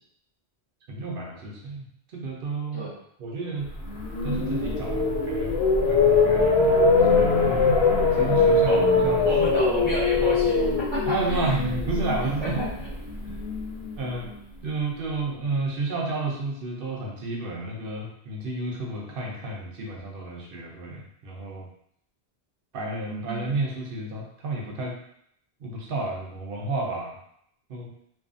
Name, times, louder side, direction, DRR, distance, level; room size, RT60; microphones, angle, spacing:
voice 1, 0.9-2.9 3.2-3.7 4.2-5.6 5.9-7.3 8.1-9.3 10.2-10.3 11.1-12.6 13.2-13.4 14.0-14.3 14.6-21.7 22.7-24.9 25.6-27.2 27.7-27.9, right 2 dB, 65° right, -1 dB, 0.8 m, -31 dB
sound 1, 3.8-13.9, left 3 dB, 70° left, 1.0 m, -22 dB
voice 2, 9.2-11.5 12.2-12.9 23.1-23.5, right 1 dB, 25° right, -11 dB, 0.8 m, -31 dB
2.6 x 2.5 x 2.5 m, 0.70 s
omnidirectional pair, 1.1 m